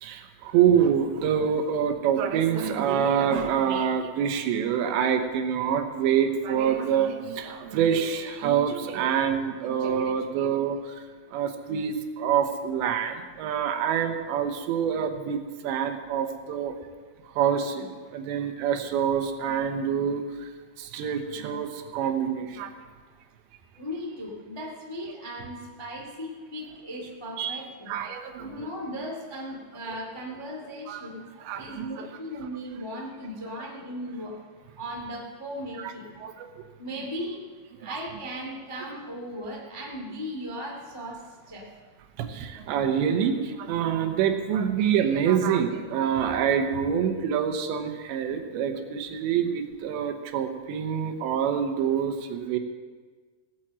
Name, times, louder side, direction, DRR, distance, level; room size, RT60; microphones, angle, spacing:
voice 1, 0.0-11.0 11.3-16.7 17.4-20.5 20.8-22.7 27.4-27.6 27.9-28.7 29.9-30.0 30.9-31.0 31.4-32.1 35.8-35.9 36.2-36.5 37.8-38.0 38.8-38.9 42.2-52.6, right 8 dB, 85° right, 6 dB, 3.3 m, -26 dB
voice 2, 23.8-28.0 28.4-31.2 31.5-34.4 34.8-36.2 36.8-37.5 37.8-41.7, equal, 30° left, -1 dB, 0.4 m, -37 dB
16.5 x 9.0 x 7.6 m, 1.5 s
omnidirectional pair, 5.0 m